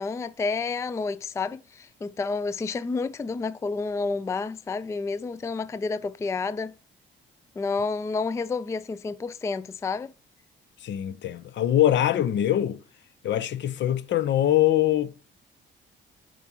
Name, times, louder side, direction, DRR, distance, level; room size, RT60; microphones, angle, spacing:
voice 1, 0.0-6.7 7.6-10.1, left 4 dB, 15° left, 0.3 m, -30 dB
voice 2, 10.8-12.8 13.2-15.2, left 12 dB, 65° left, 0.7 m, -23 dB
7.3 x 5.0 x 2.8 m
cardioid pair, 90°, 20 cm